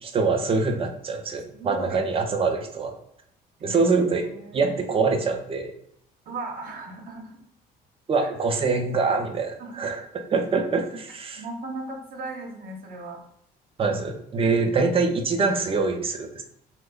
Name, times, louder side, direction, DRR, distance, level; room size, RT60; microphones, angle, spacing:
voice 1, 0.0-2.9 3.6-4.3 4.5-5.7 8.1-10.0 10.3-11.4 13.8-16.4, right 4 dB, 35° right, 5 dB, 0.6 m, -24 dB
voice 2, 1.5-2.0 3.6-3.8 4.2-4.9 6.2-7.4 8.2-8.3 9.6-9.9 11.3-13.2, right 2 dB, 60° right, 2 dB, 0.9 m, -37 dB
3.3 x 2.1 x 3.7 m, 0.71 s
cardioid pair, 110°, 17 cm